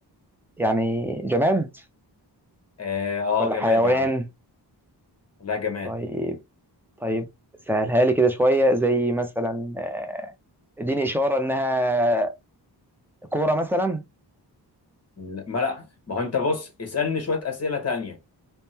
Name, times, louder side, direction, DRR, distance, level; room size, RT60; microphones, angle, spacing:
voice 1, 0.6-1.7 3.4-4.3 5.8-6.4 7.0-7.3 7.7-10.3 10.8-12.3 13.3-14.0, right 1 dB, 5° right, 0.4 m, -23 dB
voice 2, 2.8-4.1 5.4-5.9 15.2-18.2, left 5 dB, 35° left, 1.1 m, -27 dB
3.5 x 2.1 x 2.7 m
wide cardioid pair, 150°, 42 cm